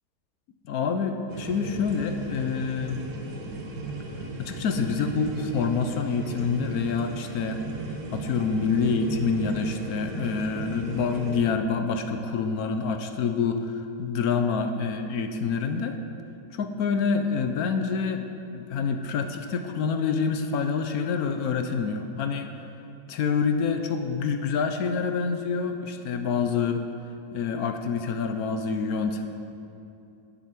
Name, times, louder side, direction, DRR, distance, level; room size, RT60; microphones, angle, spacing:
voice 1, 0.7-3.0 4.4-7.6 7.9-16.0 16.5-22.5 23.1-26.8 27.3-29.2, left 5 dB, 70° left, 6 dB, 1.2 m, -27 dB
sound 1, 1.3-11.3, right 3 dB, 90° right, 1.8 m, -36 dB
10.0 x 8.9 x 6.0 m, 2.8 s
omnidirectional pair, 1.7 m